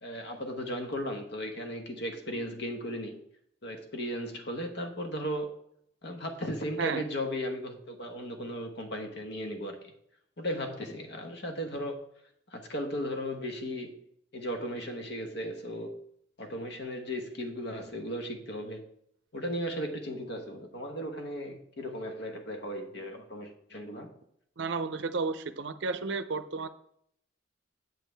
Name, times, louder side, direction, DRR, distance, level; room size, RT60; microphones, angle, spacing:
voice 1, 0.0-3.2 3.6-5.5 6.0-9.9 10.4-12.0 12.5-14.0 14.3-16.0 16.4-18.8 19.3-24.1, equal, 60° left, 1.1 m, -36 dB
voice 2, 24.6-26.7, right 4 dB, 60° right, 0.5 m, -32 dB
7.7 x 7.4 x 3.4 m
head